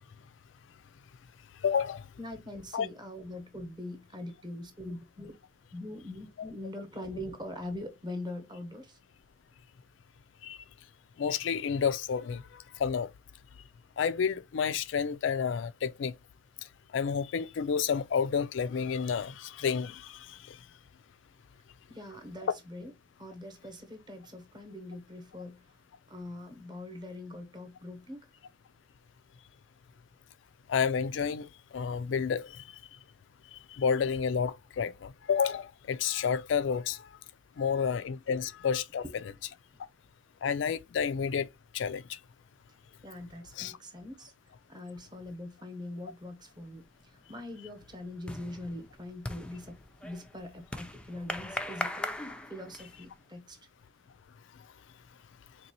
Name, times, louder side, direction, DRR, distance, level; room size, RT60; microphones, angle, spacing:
voice 1, 1.6-2.1 2.7-2.9 10.4-10.6 11.2-13.1 14.0-16.1 16.9-20.6 30.7-32.6 33.5-37.1 37.6-39.0 40.4-41.5 41.7-42.2 43.6-43.7, left 6 dB, 70° left, 0.4 m, -30 dB
voice 2, 2.2-5.3 5.7-9.0 21.9-22.9 23.2-25.7 26.1-28.3 38.4-38.5 39.0-39.1 43.0-44.3 44.7-53.6, left 1 dB, 25° right, 1.0 m, -42 dB
sound 1, 46.6-47.0 47.3-53.1, left 1 dB, 5° left, 0.4 m, -40 dB
4.1 x 2.9 x 2.8 m
head